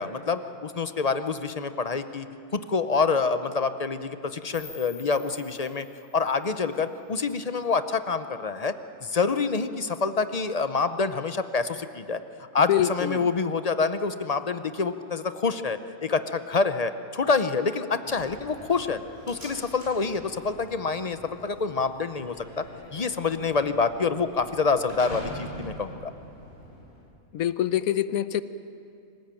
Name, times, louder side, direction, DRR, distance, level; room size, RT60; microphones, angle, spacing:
voice 1, 0.0-2.3 2.5-5.9 6.1-8.7 9.0-12.2 12.5-19.0 19.3-22.6 22.9-26.1, left 4 dB, 40° left, 10 dB, 0.5 m, -27 dB
sound 1, 4.5-7.5, left 3 dB, 70° right, 5.2 m, -50 dB
voice 2, 12.7-13.3 27.3-28.4, left 11 dB, 80° left, 14 dB, 1.2 m, -25 dB
Slam, 18.1-27.1, equal, 45° right, 7.6 m, -44 dB
25.5 x 16.0 x 8.9 m, 2.6 s
omnidirectional pair, 1.5 m